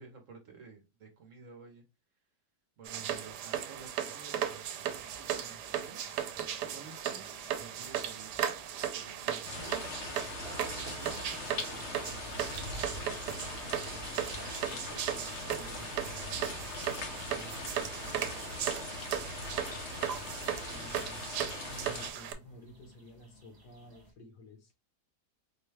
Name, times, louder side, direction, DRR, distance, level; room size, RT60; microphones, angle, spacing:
voice 1, 0.0-1.8 2.8-6.0 6.7-8.5 8.9-9.9 10.5-16.4 17.1-19.0, right 5 dB, 60° right, 0.9 m, -53 dB
sound 1, 2.9-22.3, right 10 dB, 80° right, 1.1 m, -37 dB
sound 2, 4.9-24.1, right 2 dB, 25° right, 0.5 m, -60 dB
sound 3, 9.4-22.1, left 3 dB, 55° left, 0.8 m, -41 dB
voice 2, 19.8-21.2 21.7-24.7, left 1 dB, 75° left, 1.6 m, -53 dB
4.5 x 2.2 x 3.1 m
omnidirectional pair, 1.8 m